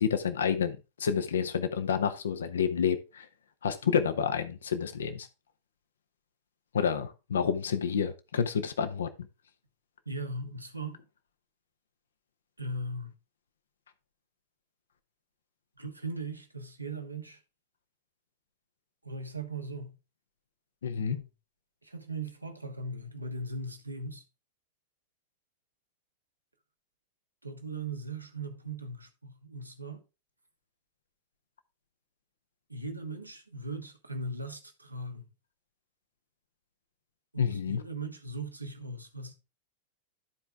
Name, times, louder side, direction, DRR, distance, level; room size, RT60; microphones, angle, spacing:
voice 1, 0.0-3.3 3.6-5.3 6.7-9.1 20.8-21.2 37.4-37.8, left 7 dB, 65° left, 0.8 m, -29 dB
voice 2, 10.0-11.0 12.6-13.1 15.8-17.4 19.0-20.0 20.9-21.2 21.8-24.2 27.4-30.0 32.7-35.3 37.3-39.3, right 2 dB, 85° right, 1.3 m, -39 dB
12.5 x 4.5 x 3.5 m
figure-of-eight pair, 90°, 0 cm